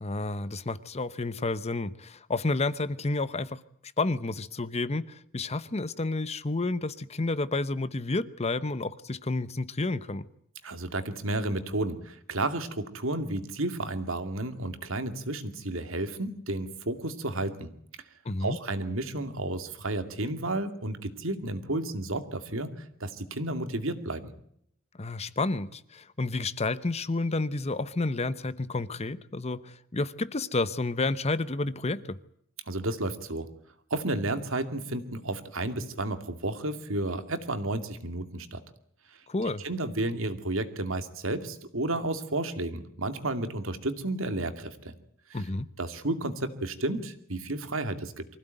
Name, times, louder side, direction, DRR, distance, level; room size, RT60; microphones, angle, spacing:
voice 1, 0.0-3.6 4.0-10.3 18.2-18.6 25.0-32.2 39.3-39.6 45.3-45.7, left 2 dB, 30° left, 0.9 m, -30 dB
voice 2, 10.6-17.7 18.4-22.7 23.0-24.3 32.7-33.5 33.9-38.6 39.6-44.9 45.3-45.4 45.8-48.3, right 2 dB, 65° right, 2.4 m, -32 dB
24.5 x 16.0 x 9.1 m
head